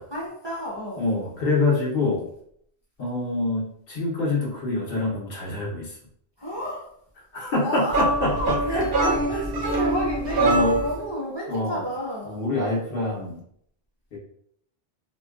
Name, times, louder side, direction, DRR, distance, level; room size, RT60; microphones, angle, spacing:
voice 1, 0.1-1.1 6.4-6.9 7.5-12.4, equal, 35° right, -5 dB, 0.4 m, -30 dB
voice 2, 1.0-2.2 3.0-6.0 7.3-9.1 10.4-10.8 11.5-11.8 12.3-13.4 14.1-14.2, left 2 dB, 60° left, -3 dB, 0.9 m, -25 dB
sound 1, 7.9-11.0, right 2 dB, 65° right, 0.7 m, -25 dB
2.5 x 2.2 x 2.3 m, 0.67 s
omnidirectional pair, 1.1 m